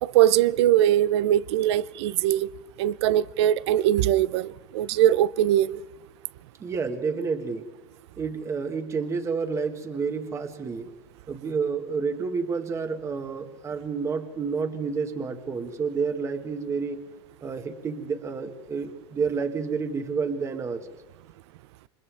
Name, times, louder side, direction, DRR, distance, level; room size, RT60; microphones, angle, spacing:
voice 1, 0.0-2.5 2.8-5.8, right 12 dB, 75° right, 0.7 m, -21 dB
voice 2, 6.6-7.7 8.2-10.9 11.3-17.0 17.4-20.9, right 5 dB, 20° right, 1.7 m, -29 dB
29.0 x 26.0 x 3.5 m
supercardioid pair, 145°, 15 cm